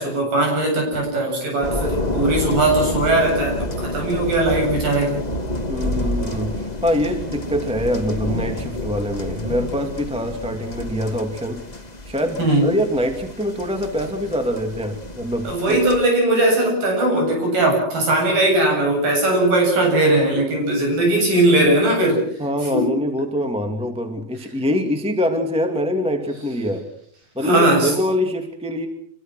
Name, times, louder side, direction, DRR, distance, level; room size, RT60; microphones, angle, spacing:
voice 1, 0.0-5.2 12.4-12.7 15.4-22.3 22.7-22.9 27.4-28.0, right 2 dB, 65° right, 1 dB, 9.6 m, -19 dB
sound 1, 1.6-16.0, left 1 dB, 20° left, 1.2 m, -29 dB
voice 2, 5.7-11.6 12.0-15.8 22.4-26.9 27.3-28.9, left 1 dB, ahead, 5 dB, 1.6 m, -24 dB
26.5 x 23.0 x 6.3 m, 0.63 s
omnidirectional pair, 4.3 m